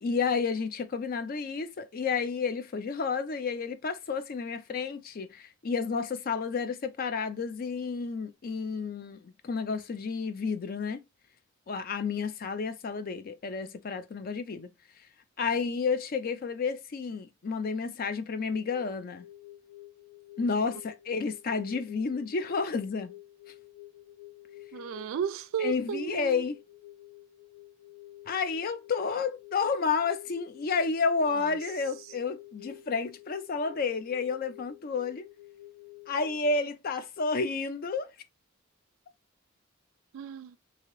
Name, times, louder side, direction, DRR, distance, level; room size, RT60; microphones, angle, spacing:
voice 1, 0.0-11.0 11.7-14.7 15.4-19.2 20.4-23.1 25.6-26.6 28.3-35.2 36.1-38.1, left 5 dB, 45° left, 0.4 m, -31 dB
sound 1, 18.5-36.5, left 15 dB, 70° left, 1.3 m, -50 dB
voice 2, 24.7-26.4 31.4-31.6 32.0-32.1 40.1-40.6, right 7 dB, 80° right, 0.3 m, -34 dB
2.8 x 2.8 x 3.0 m
head